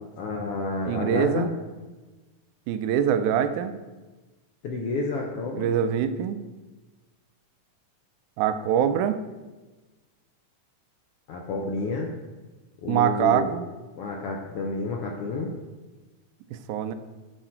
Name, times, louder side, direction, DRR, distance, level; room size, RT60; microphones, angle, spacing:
voice 1, 0.0-1.5 4.6-5.7 11.3-12.1 12.8-13.5 14.0-15.5, left 3 dB, 75° left, 0 dB, 1.4 m, -30 dB
voice 2, 0.9-1.5 2.7-3.7 5.6-6.4 8.4-9.2 12.9-13.6 16.5-16.9, right 9 dB, 85° right, 10 dB, 2.0 m, -24 dB
10.0 x 4.9 x 4.4 m, 1.2 s
omnidirectional pair, 3.4 m